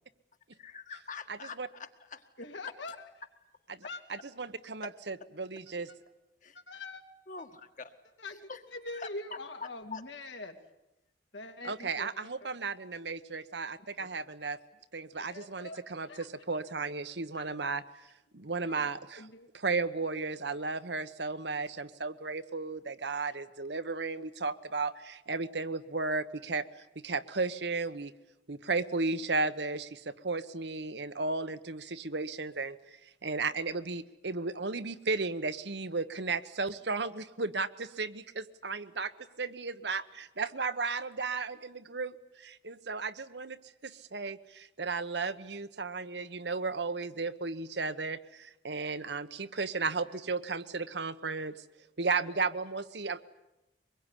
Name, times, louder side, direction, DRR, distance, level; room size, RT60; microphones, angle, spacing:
voice 1, 0.6-2.2 4.8-4.9 6.4-6.6 7.3-7.5 7.8-7.9 8.5-8.6 8.9-9.1 9.6-10.0, left 4 dB, 45° left, 7 dB, 1.8 m, -44 dB
voice 2, 2.4-3.1 3.8-4.0 6.5-7.0 8.2-10.6 11.3-12.5 14.0-14.1 15.3-16.3 17.4-17.5 18.7-18.9 19.2-19.5, left 2 dB, 80° left, 5 dB, 2.8 m, -44 dB
voice 3, 4.1-5.9 11.6-14.6 14.9-17.8 18.3-19.2 19.6-26.6 27.0-28.1 28.5-39.1 39.4-51.5 52.0-53.2, right 4 dB, 65° right, 13 dB, 1.1 m, -34 dB
24.5 x 22.0 x 10.0 m, 0.93 s
head